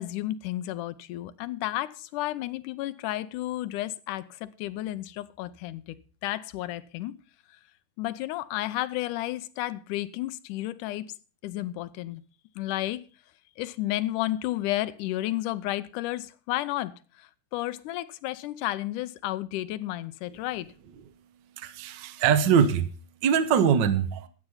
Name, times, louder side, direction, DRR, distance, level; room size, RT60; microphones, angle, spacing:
voice 1, 0.0-6.0 6.2-7.2 8.0-11.1 11.4-12.2 12.6-13.0 13.6-20.7, left 15 dB, 90° left, 2.2 m, -32 dB
voice 2, 21.6-22.9 23.2-24.3, right 7 dB, 70° right, 1.0 m, -22 dB
13.0 x 8.2 x 5.5 m
omnidirectional pair, 3.5 m